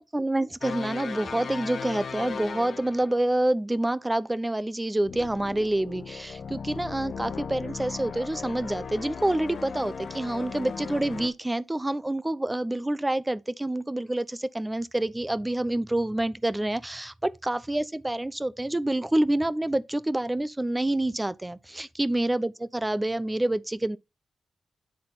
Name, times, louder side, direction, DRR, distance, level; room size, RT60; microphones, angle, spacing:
voice 1, 0.0-24.0, right 1 dB, 20° right, 0.7 m, -27 dB
sound 1, 0.6-3.3 5.0-11.3, left 6 dB, 70° left, 1.0 m, -37 dB
9.7 x 3.9 x 4.0 m
supercardioid pair, 45°, 0 cm